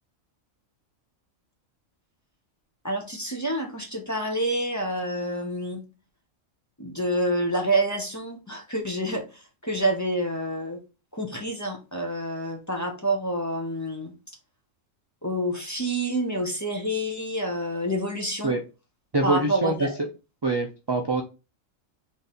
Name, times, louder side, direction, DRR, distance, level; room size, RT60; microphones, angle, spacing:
voice 1, 2.8-5.8 6.8-10.8 11.1-14.1 15.2-18.5 19.2-20.0, right 1 dB, 15° left, 2 dB, 0.7 m, -28 dB
voice 2, 19.1-19.9 20.4-21.2, right 2 dB, 40° right, 2 dB, 0.3 m, -24 dB
4.0 x 3.2 x 4.1 m, 0.30 s
omnidirectional pair, 1.4 m